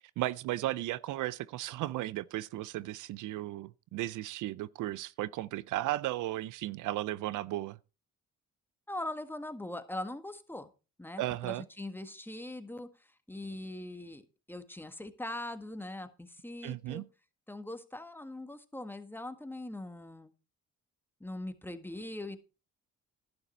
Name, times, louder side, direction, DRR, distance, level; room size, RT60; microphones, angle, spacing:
voice 1, 0.2-7.8 11.2-11.6 16.6-17.1, right 15 dB, 80° right, 0.6 m, -35 dB
voice 2, 8.9-10.7 11.0-12.9 13.3-14.2 14.5-17.0 17.5-20.3 21.2-22.4, left 1 dB, 5° left, 1.6 m, -41 dB
11.5 x 9.7 x 4.4 m
cardioid pair, 90°, 30 cm